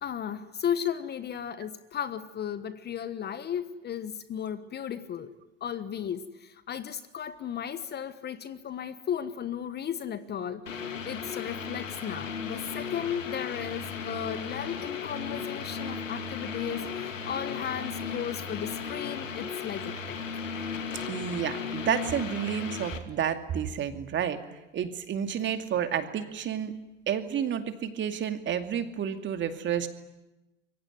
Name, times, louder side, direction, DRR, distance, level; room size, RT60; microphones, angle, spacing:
voice 1, 0.0-5.3 5.6-10.8 11.0-20.2, left 9 dB, 25° left, 13 dB, 1.3 m, -35 dB
sound 1, 10.7-23.0, left 6 dB, 80° left, 2.6 m, -36 dB
voice 2, 21.1-24.4 24.7-26.7 27.1-29.9, right 8 dB, 30° right, 7 dB, 2.4 m, -30 dB
26.5 x 23.0 x 9.4 m, 1.0 s
hypercardioid pair, 90°, 38 cm